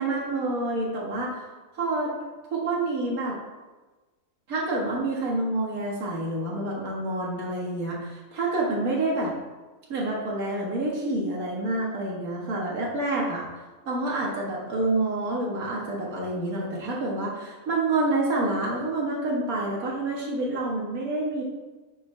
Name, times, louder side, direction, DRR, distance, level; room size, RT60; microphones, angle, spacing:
voice 1, 0.0-1.4 1.7-2.1 2.5-3.4 4.5-9.3 9.9-13.5 13.9-21.4, right 2 dB, 90° right, -4 dB, 2.1 m, -28 dB
10.0 x 5.5 x 3.3 m, 1.2 s
omnidirectional pair, 1.5 m